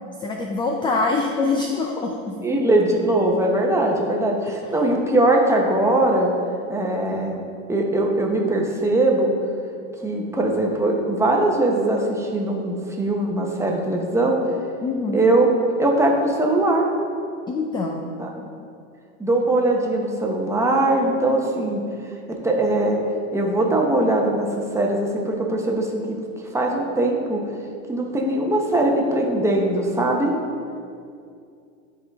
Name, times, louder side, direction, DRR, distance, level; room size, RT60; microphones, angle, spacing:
voice 1, 0.2-2.3 14.8-15.2 17.5-18.0, left 3 dB, 15° left, 2 dB, 0.4 m, -24 dB
voice 2, 2.4-6.3 6.7-7.4 7.7-9.3 10.0-14.4 15.1-15.5 15.8-16.9 18.2-18.3 19.2-21.8 22.3-23.0 23.3-26.2 26.5-27.4 27.9-30.3, right 1 dB, 10° right, 0 dB, 0.8 m, -21 dB
10.5 x 3.8 x 3.5 m, 2.4 s
supercardioid pair, 120°, 37 cm